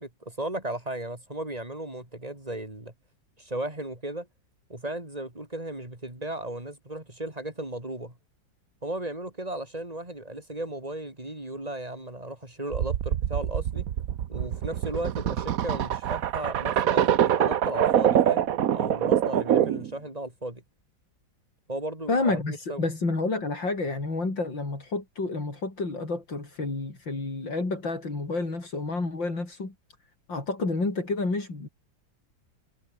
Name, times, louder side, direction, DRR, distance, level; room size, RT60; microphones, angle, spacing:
voice 1, 0.0-2.9 3.4-4.3 4.7-8.2 8.8-13.9 14.3-20.6 21.7-22.9, right 1 dB, 20° right, 4.5 m, -35 dB
sound 1, 12.7-19.9, right 10 dB, 55° right, 1.2 m, -25 dB
voice 2, 22.1-29.7 30.3-31.7, left 3 dB, 75° left, 6.4 m, -29 dB
omnidirectional pair, 2.0 m